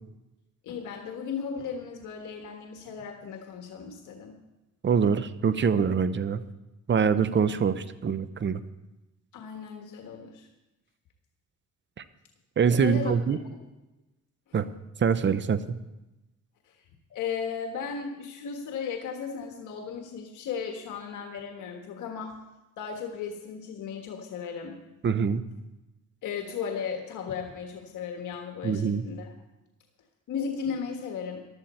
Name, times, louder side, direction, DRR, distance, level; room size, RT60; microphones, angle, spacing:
voice 1, 0.6-4.4 9.3-10.5 12.8-13.1 13.5-13.6 16.7-16.8 17.1-22.3 22.8-24.8 26.2-29.3 30.3-31.4, left 6 dB, 80° left, 3 dB, 1.5 m, -35 dB
voice 2, 4.8-6.4 6.9-8.6 12.6-13.4 14.5-14.6 15.0-15.6 25.0-25.4 28.6-29.0, right 6 dB, 40° right, 13 dB, 0.8 m, -24 dB
15.0 x 12.0 x 4.4 m, 0.99 s
cardioid pair, 90°, 30 cm